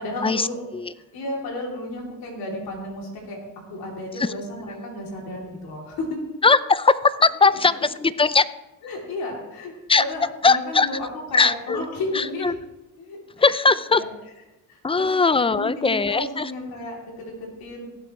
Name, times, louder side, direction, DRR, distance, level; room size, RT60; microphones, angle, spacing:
voice 1, 0.0-0.6 0.9-3.4 3.7-6.2 8.8-12.5 13.0-13.4 13.9-14.1 14.7-15.1 15.5-17.8, left 1 dB, 90° left, -1 dB, 3.0 m, -33 dB
voice 2, 6.4-8.5 9.9-10.0 10.4-10.9 11.3-11.8 12.1-12.5 13.4-14.0 14.8-16.5, left 4 dB, 15° left, 16 dB, 0.4 m, -19 dB
18.0 x 7.8 x 3.1 m, 1.0 s
cardioid pair, 70°, 36 cm